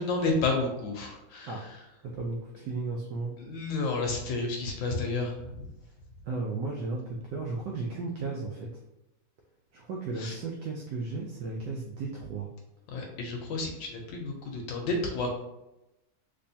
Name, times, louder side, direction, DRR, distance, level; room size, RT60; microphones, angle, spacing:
voice 1, 0.0-1.6 3.4-5.7 10.2-10.3 12.9-15.3, left 3 dB, 75° left, 2 dB, 1.2 m, -31 dB
voice 2, 2.0-3.3 6.3-8.7 9.7-12.5, right 3 dB, 80° right, 0 dB, 0.9 m, -34 dB
3.3 x 3.0 x 2.6 m, 0.93 s
omnidirectional pair, 2.4 m